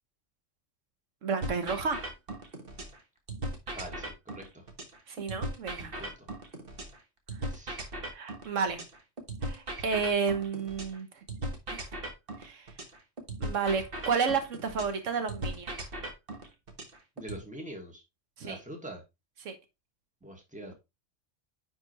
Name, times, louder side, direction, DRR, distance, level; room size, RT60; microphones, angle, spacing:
voice 1, 1.2-2.1 5.1-6.0 8.1-8.8 9.4-11.1 12.4-12.7 13.4-15.8 18.4-18.6 19.4-19.6, right 5 dB, 85° right, 1.4 m, -31 dB
sound 1, 1.4-3.0 3.3-7.0 7.3-11.0 11.3-15.0 15.3-17.4, right 1 dB, 50° right, 1.6 m, -38 dB
voice 2, 3.7-4.6 5.8-6.3 7.5-7.8 17.2-18.0 18.4-19.0 20.2-20.8, right 1 dB, 5° right, 1.8 m, -44 dB
9.8 x 4.4 x 3.1 m
omnidirectional pair, 1.3 m